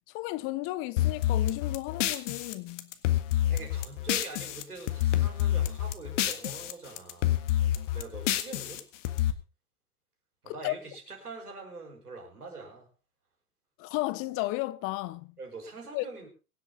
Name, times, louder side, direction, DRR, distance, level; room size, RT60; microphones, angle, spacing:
voice 1, 0.1-2.9 10.5-10.7 13.8-15.3 15.9-16.3, left 19 dB, 30° left, 0.6 m, -34 dB
sound 1, 1.0-4.6 4.9-6.7 7.0-9.3, left 12 dB, 55° left, 1.7 m, -28 dB
voice 2, 3.5-7.6 7.9-8.8 10.4-12.9 15.4-16.3, right 3 dB, 85° right, 5.3 m, -44 dB
23.0 x 8.1 x 3.9 m
figure-of-eight pair, 100°, 44 cm